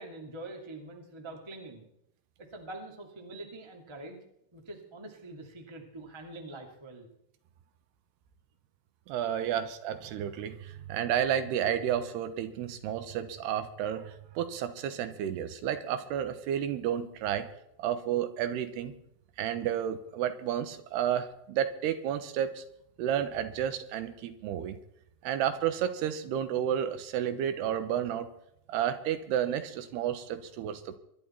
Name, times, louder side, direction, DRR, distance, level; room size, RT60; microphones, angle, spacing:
voice 1, 0.0-1.9 2.4-4.2 4.5-7.1 9.4-9.5, right 2 dB, 45° right, 2 dB, 0.3 m, -45 dB
voice 2, 9.1-17.5 17.8-18.9 19.4-22.6 23.0-24.8 25.2-28.3 28.7-31.0, right 10 dB, 75° right, 10 dB, 3.0 m, -31 dB
23.5 x 11.0 x 4.4 m, 0.76 s
omnidirectional pair, 5.0 m